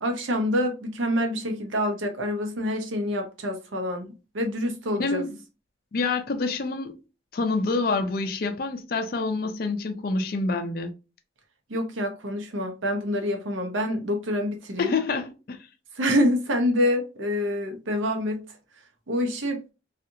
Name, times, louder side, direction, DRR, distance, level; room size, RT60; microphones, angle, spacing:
voice 1, 0.0-5.3 11.7-14.9 16.0-18.4 19.1-19.6, equal, 90° right, 0.7 m, -26 dB
voice 2, 5.0-5.4 5.9-6.9 7.3-10.9 14.8-15.6, left 3 dB, 50° left, 0.4 m, -27 dB
2.7 x 2.4 x 2.5 m
head